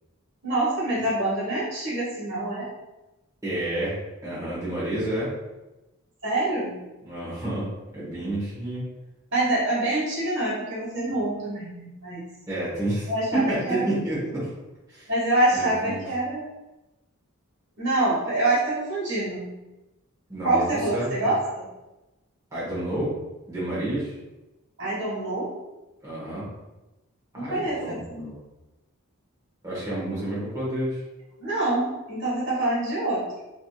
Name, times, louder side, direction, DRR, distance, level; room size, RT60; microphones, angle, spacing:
voice 1, 0.4-2.7 6.2-6.8 9.3-12.2 13.1-13.8 15.1-16.5 17.8-19.5 20.4-21.6 24.8-25.5 27.3-28.3 31.4-33.3, right 2 dB, 55° right, -7 dB, 1.3 m, -26 dB
voice 2, 3.4-5.3 7.0-7.7 7.9-8.9 12.5-14.5 14.9-15.1 15.5-16.0 20.3-20.6 20.9-21.1 22.5-23.2 23.5-24.1 26.0-26.5 27.3-28.4 29.6-31.0, right 1 dB, 15° right, -9 dB, 1.2 m, -29 dB
3.4 x 2.8 x 2.3 m, 1.0 s
head